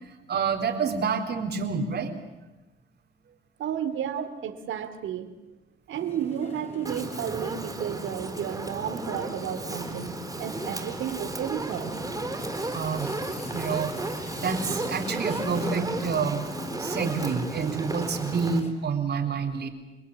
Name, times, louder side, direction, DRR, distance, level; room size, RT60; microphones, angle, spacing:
voice 1, 0.3-2.2 4.2-4.3 12.7-13.1 13.5-13.9 14.4-16.5 16.8-19.7, right 5 dB, 55° right, 5 dB, 4.0 m, -28 dB
voice 2, 3.6-5.3 5.9-12.0, right 9 dB, 80° right, 9 dB, 2.7 m, -32 dB
sound 1, 5.9-18.7, left 3 dB, 30° left, 5.3 m, -42 dB
Fire, 6.8-18.6, right 2 dB, 15° right, 4.2 m, -34 dB
29.0 x 20.0 x 8.7 m, 1.1 s
cardioid pair, 90°, 20 cm